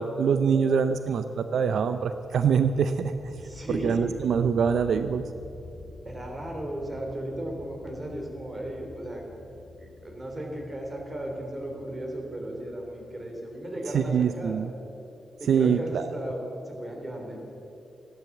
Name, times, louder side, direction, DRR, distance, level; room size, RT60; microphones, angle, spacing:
voice 1, 0.0-3.3 3.7-5.3 13.9-14.7 15.4-16.1, right 6 dB, 80° right, 10 dB, 0.5 m, -24 dB
sound 1, 2.0-14.4, left 3 dB, 90° left, 2.3 m, -49 dB
voice 2, 3.4-4.1 6.0-9.2 9.8-14.6 15.4-17.4, right 1 dB, 25° right, 1 dB, 3.4 m, -35 dB
14.5 x 12.0 x 7.3 m, 2.8 s
cardioid pair, 100°, 0 cm